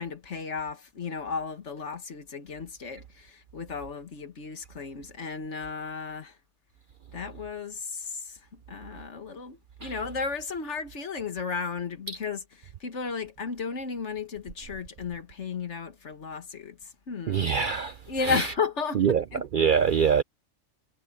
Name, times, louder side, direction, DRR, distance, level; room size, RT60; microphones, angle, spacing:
voice 1, 0.0-6.4 7.1-17.5 18.1-19.7, left 5 dB, 65° left, 1.9 m, -34 dB
voice 2, 17.3-17.9 19.0-19.2 19.5-20.2, right 7 dB, 55° right, 0.6 m, -23 dB
omnidirectional pair, 1.3 m